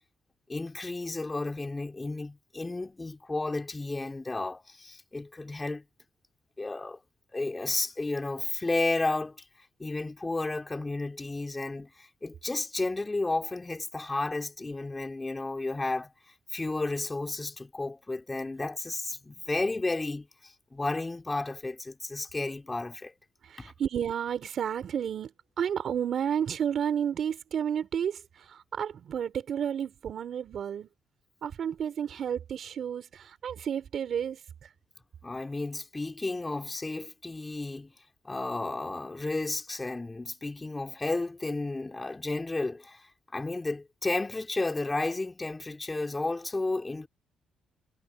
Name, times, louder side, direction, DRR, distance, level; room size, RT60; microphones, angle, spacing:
voice 1, 0.5-5.8 6.6-7.0 7.3-9.4 9.8-16.1 16.5-23.1 23.6-23.7 35.2-37.9 38.2-47.1, left 2 dB, 20° left, 4.3 m, -32 dB
voice 2, 23.5-25.3 25.6-28.2 28.5-30.9 31.4-34.4, right 8 dB, 60° right, 4.3 m, -31 dB
cardioid pair, 90°, 0 cm